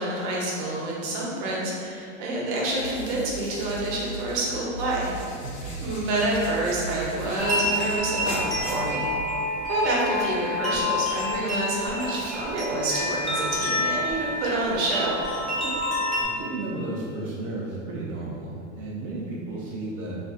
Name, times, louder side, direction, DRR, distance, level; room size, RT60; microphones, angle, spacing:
voice 1, 0.0-5.1 5.8-8.4 8.7-9.1 9.7-15.1, right 2 dB, 60° right, -4 dB, 0.8 m, -27 dB
sound 1, 2.5-9.5, right 1 dB, 50° left, 0.9 m, -37 dB
voice 2, 5.4-5.8 15.6-15.8 16.2-20.1, right 2 dB, 85° right, -5 dB, 0.6 m, -33 dB
sound 2, 7.4-16.2, left 1 dB, ahead, 0.6 m, -28 dB
2.5 x 2.4 x 2.4 m, 2.4 s
hypercardioid pair, 110°, 38 cm